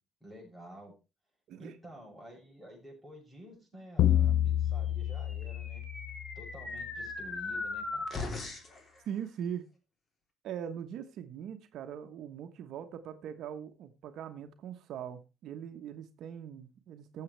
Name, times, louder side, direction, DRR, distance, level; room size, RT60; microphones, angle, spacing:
voice 1, 0.2-0.9 1.6-5.8 6.4-8.1, equal, 5° left, 7.2 m, -50 dB
sound 1, 4.0-6.7, left 11 dB, 70° left, 0.5 m, -29 dB
sound 2, 5.2-8.8, left 3 dB, 35° left, 3.2 m, -39 dB
voice 2, 9.1-9.7 10.4-17.2, right 9 dB, 70° right, 1.1 m, -41 dB
15.5 x 7.6 x 3.3 m
cardioid pair, 115°, 0 cm